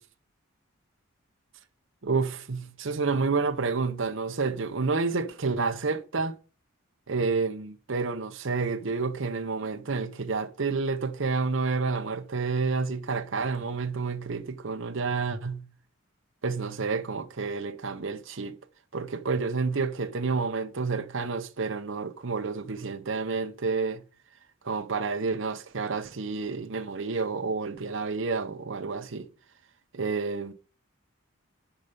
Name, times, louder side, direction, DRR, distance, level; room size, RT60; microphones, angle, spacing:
voice 1, 2.0-6.3 7.1-15.6 16.4-18.6 18.9-24.0 24.6-29.3 29.9-30.5, right 4 dB, 60° right, 0.7 m, -29 dB
10.0 x 5.6 x 5.3 m
head